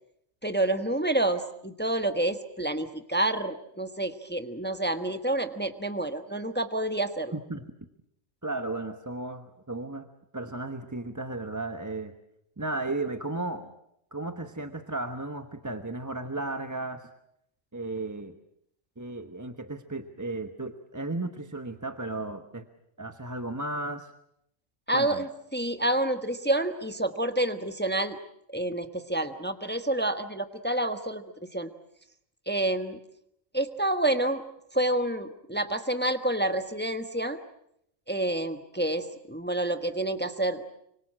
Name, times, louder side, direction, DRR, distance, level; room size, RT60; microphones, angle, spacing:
voice 1, 0.4-7.3 24.9-28.2 28.5-31.2 31.5-31.7 32.5-33.0 33.5-34.4 34.7-37.4 38.1-40.6, right 1 dB, 10° left, 8 dB, 1.1 m, -28 dB
voice 2, 7.3-7.6 8.4-10.1 10.3-12.1 12.6-13.7 14.1-17.1 17.7-18.4 19.0-22.6 23.0-24.1 24.9-25.2, right 2 dB, 15° right, 7 dB, 1.0 m, -34 dB
25.5 x 24.5 x 7.5 m, 0.75 s
omnidirectional pair, 1.3 m